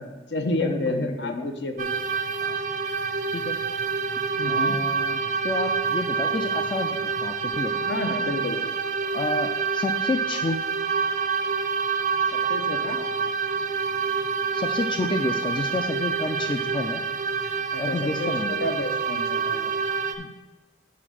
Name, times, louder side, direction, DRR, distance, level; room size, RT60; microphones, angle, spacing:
voice 1, 0.0-1.9 4.4-4.8 7.8-8.6 12.3-13.0 17.7-19.7, left 2 dB, 70° left, 6 dB, 0.8 m, -30 dB
voice 2, 0.6-1.5 2.5-2.6 3.3-3.6 4.5-7.8 9.1-10.6 14.5-17.0 17.8-18.6 20.2-20.3, left 2 dB, 25° left, 6 dB, 0.3 m, -30 dB
sound 1, 1.8-20.1, right 5 dB, 45° right, 0.5 m, -27 dB
5.8 x 5.0 x 6.2 m, 1.2 s
head